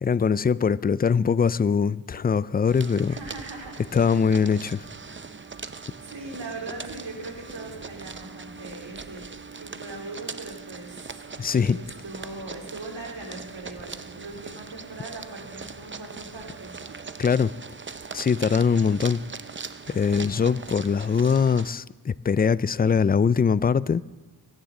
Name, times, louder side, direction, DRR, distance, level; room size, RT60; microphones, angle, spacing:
voice 1, 0.0-3.2 3.9-4.8 11.4-11.8 17.2-17.5 18.1-19.2 19.9-24.0, left 6 dB, 25° left, 0.3 m, -22 dB
sound 1, 2.7-21.7, right 4 dB, 25° right, 0.6 m, -40 dB
voice 2, 3.1-3.8 6.0-9.2 9.6-11.1 11.7-16.9, right 2 dB, 75° right, 3.1 m, -40 dB
22.0 x 10.0 x 3.8 m
cardioid pair, 45°, 43 cm